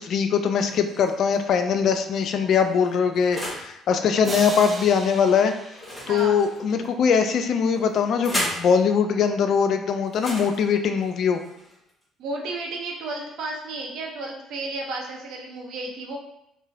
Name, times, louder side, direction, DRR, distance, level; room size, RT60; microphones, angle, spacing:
voice 1, 0.0-5.5 6.1-11.4, left 6 dB, 55° left, 7 dB, 0.3 m, -21 dB
sound 1, 0.6-1.4 2.1-3.7 5.7-6.9 7.7-8.7 10.1-12.0, left 1 dB, 20° left, 1.4 m, -35 dB
sound 2, 4.2-6.9, right 2 dB, 25° right, 0.5 m, -37 dB
voice 2, 6.1-6.4 12.2-16.2, right 2 dB, 60° right, 0 dB, 0.7 m, -32 dB
4.5 x 2.1 x 2.7 m, 0.82 s
hypercardioid pair, 50°, 0 cm